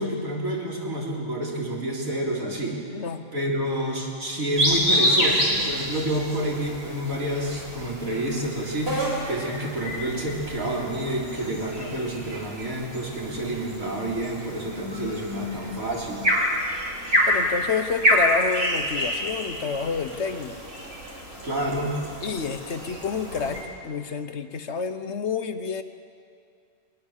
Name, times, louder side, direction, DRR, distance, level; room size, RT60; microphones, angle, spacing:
voice 1, 0.0-2.8 3.3-16.3 21.4-22.0, right 1 dB, 85° right, -3 dB, 4.2 m, -29 dB
voice 2, 2.9-3.2 17.3-20.6 22.2-25.8, left 5 dB, 60° left, 9 dB, 1.2 m, -29 dB
sound 1, 4.6-23.6, equal, 50° right, 4.5 m, -28 dB
21.5 x 19.5 x 7.3 m, 2.3 s
omnidirectional pair, 1.4 m